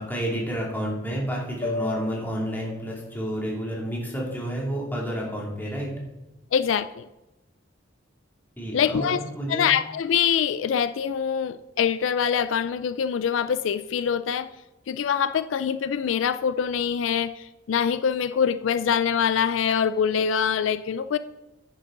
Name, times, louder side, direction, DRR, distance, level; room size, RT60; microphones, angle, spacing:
voice 1, 0.0-5.9 8.6-9.6, equal, 10° left, -3 dB, 2.6 m, -30 dB
sound 1, 1.6-5.9, left 3 dB, 30° left, 0.7 m, -39 dB
voice 2, 6.5-7.1 8.7-9.2 9.5-14.5 14.9-21.2, left 7 dB, 85° left, 13 dB, 0.4 m, -24 dB
9.9 x 9.7 x 3.8 m, 1.0 s
head